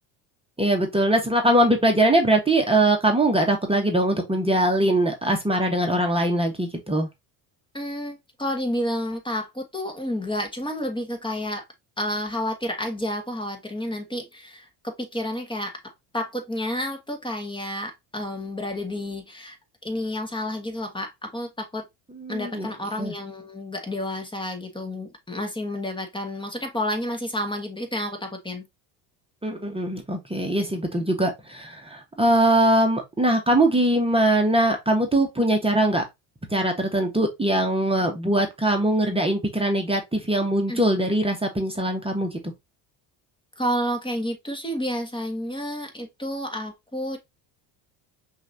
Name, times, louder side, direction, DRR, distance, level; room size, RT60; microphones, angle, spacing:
voice 1, 0.6-7.1 22.2-22.7 23.0-23.1 29.4-36.0 36.5-42.3, right 1 dB, 10° right, 1.2 m, -22 dB
voice 2, 7.7-11.6 12.0-19.6 19.8-21.8 22.3-28.7 40.7-40.8 43.6-47.2, left 1 dB, 10° left, 1.4 m, -30 dB
5.7 x 2.8 x 2.6 m
supercardioid pair, 85°, 47 cm